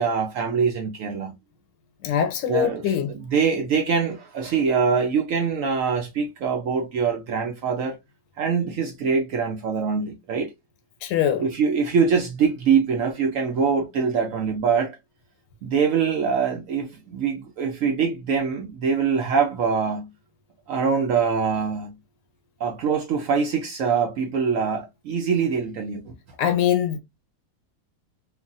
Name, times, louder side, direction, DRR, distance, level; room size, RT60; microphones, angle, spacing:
voice 1, 0.0-1.3 2.5-8.0 8.4-10.5 11.4-14.9 15.6-20.1 20.7-21.9 22.6-26.1, right 6 dB, 70° right, 0.8 m, -24 dB
voice 2, 2.0-3.1 11.0-11.4 26.4-27.0, left 9 dB, 90° left, 1.3 m, -22 dB
3.2 x 2.2 x 2.4 m
omnidirectional pair, 1.9 m